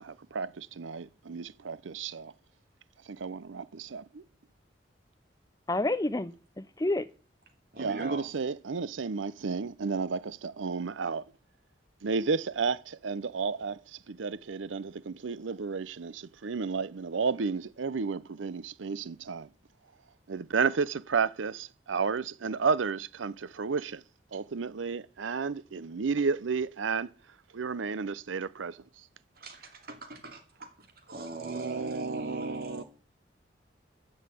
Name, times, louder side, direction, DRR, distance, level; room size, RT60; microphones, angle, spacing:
voice 1, 0.0-2.3 3.1-4.2 7.8-11.2 12.0-13.8 14.1-19.5 20.3-24.0 24.3-27.1 27.5-28.8 31.4-32.8, right 5 dB, 85° right, 0.6 m, -32 dB
voice 2, 5.7-7.0, left 2 dB, 20° left, 0.6 m, -29 dB
voice 3, 7.7-8.3 29.4-32.8, right 2 dB, 50° right, 2.6 m, -40 dB
14.5 x 5.6 x 8.2 m
head